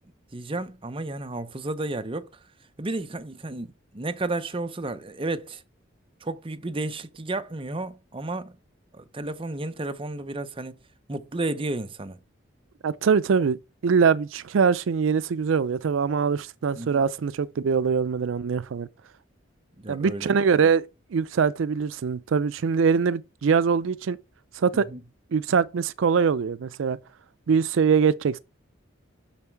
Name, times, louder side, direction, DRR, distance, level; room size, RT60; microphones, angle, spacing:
voice 1, 0.3-2.3 2.8-5.6 6.2-8.6 8.9-10.8 11.1-12.2 16.8-17.0 19.8-20.3 24.7-25.0, right 2 dB, 25° right, 0.6 m, -32 dB
voice 2, 12.8-18.9 19.9-20.8 21.1-24.2 24.5-24.9 25.3-27.0 27.5-28.4, right 6 dB, 80° right, 0.4 m, -23 dB
7.2 x 6.3 x 4.5 m
head